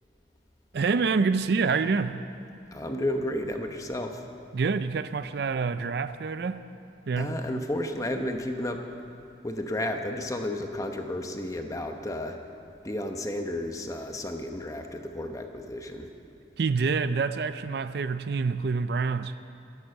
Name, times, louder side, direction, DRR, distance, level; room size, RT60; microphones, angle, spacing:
voice 1, 0.7-2.3 4.5-6.6 7.1-7.6 16.6-19.4, right 4 dB, 55° right, 12 dB, 0.4 m, -27 dB
voice 2, 2.7-4.3 7.2-8.9 9.4-12.4 12.8-16.1, left 1 dB, 20° left, 5 dB, 0.9 m, -32 dB
13.5 x 11.5 x 6.8 m, 2.6 s
head